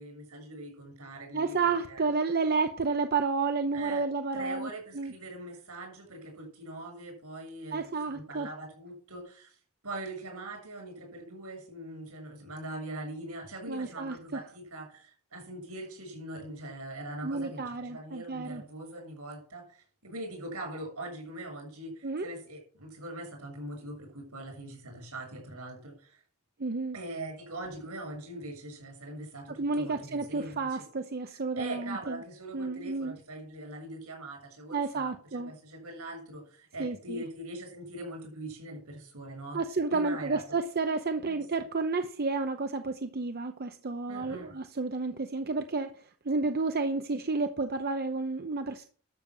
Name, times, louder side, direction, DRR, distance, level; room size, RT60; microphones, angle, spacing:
voice 1, 0.0-1.6 1.9-2.0 3.7-4.0 4.3-9.5 9.8-26.2 26.9-30.8 31.5-39.6 39.9-40.4 41.3-41.4 44.1-44.5, right 1 dB, 75° right, 3 dB, 7.1 m, -42 dB
voice 2, 1.3-5.1 7.7-8.5 13.7-14.2 17.2-18.6 22.0-22.3 26.6-27.0 29.6-32.2 32.5-33.2 34.7-35.5 36.8-37.2 39.5-48.8, right 4 dB, 45° right, 7 dB, 0.8 m, -31 dB
12.5 x 7.3 x 6.1 m, 0.43 s
head